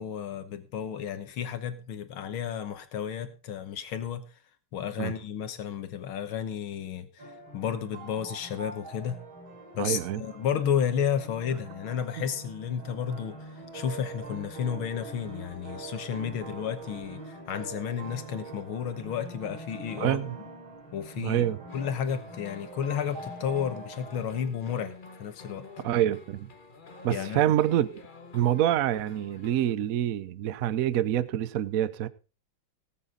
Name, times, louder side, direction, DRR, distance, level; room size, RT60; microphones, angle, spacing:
voice 1, 0.0-4.2 4.7-9.2 9.7-20.2 20.9-21.5 21.7-25.7 27.1-27.6, left 8 dB, 75° left, 1.9 m, -32 dB
sound 1, 7.2-24.2, right 2 dB, 65° right, 4.3 m, -44 dB
voice 2, 9.8-10.2 20.0-20.4 21.2-21.6 25.8-26.5 27.0-28.0 28.3-32.1, right 11 dB, 90° right, 0.7 m, -26 dB
sound 2, 21.7-29.8, left 4 dB, 30° left, 1.1 m, -49 dB
18.0 x 8.2 x 3.7 m
omnidirectional pair, 2.3 m